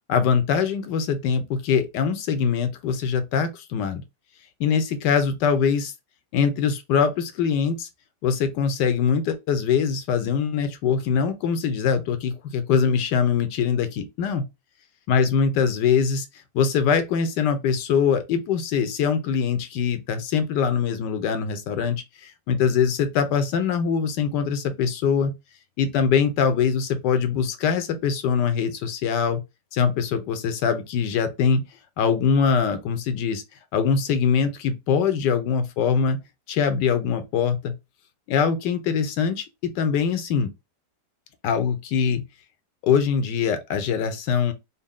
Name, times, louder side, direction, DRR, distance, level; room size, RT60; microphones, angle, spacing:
voice 1, 0.1-4.0 4.6-5.9 6.3-7.9 8.2-14.4 15.1-16.3 16.5-25.3 25.8-29.4 29.7-31.6 32.0-33.4 33.7-36.2 36.5-37.7 38.3-40.5 41.4-42.2 42.8-44.5, left 6 dB, 75° left, 1.2 m, -23 dB
4.2 x 2.1 x 3.6 m
omnidirectional pair, 1.9 m